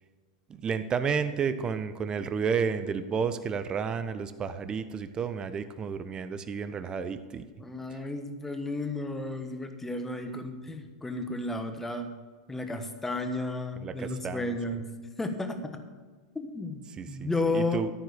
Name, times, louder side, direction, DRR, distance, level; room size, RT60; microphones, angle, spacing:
voice 1, 0.5-7.4 7.9-8.0 13.8-14.5 17.0-17.3 17.5-17.9, right 6 dB, 25° right, 11 dB, 0.6 m, -31 dB
voice 2, 7.6-12.1 12.5-14.9 15.2-15.8 16.3-16.8 17.1-17.9, left 2 dB, 10° left, 6 dB, 1.2 m, -33 dB
13.5 x 4.6 x 6.5 m, 1.4 s
hypercardioid pair, 105°, 3 cm